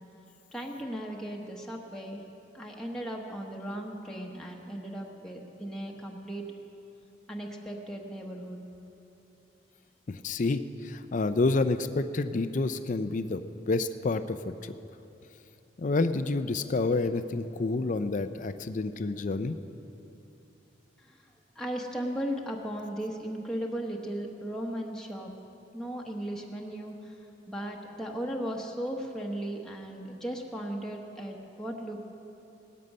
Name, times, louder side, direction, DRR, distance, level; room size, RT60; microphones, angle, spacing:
voice 1, 0.5-2.2 2.5-6.4 7.3-8.6 21.0-21.2 21.6-25.3 25.7-27.2 27.5-32.0, right 1 dB, 5° left, -1 dB, 1.1 m, -36 dB
voice 2, 10.1-14.7 15.8-19.6, left 3 dB, 45° left, 10 dB, 0.5 m, -29 dB
18.0 x 13.0 x 5.4 m, 2.8 s
head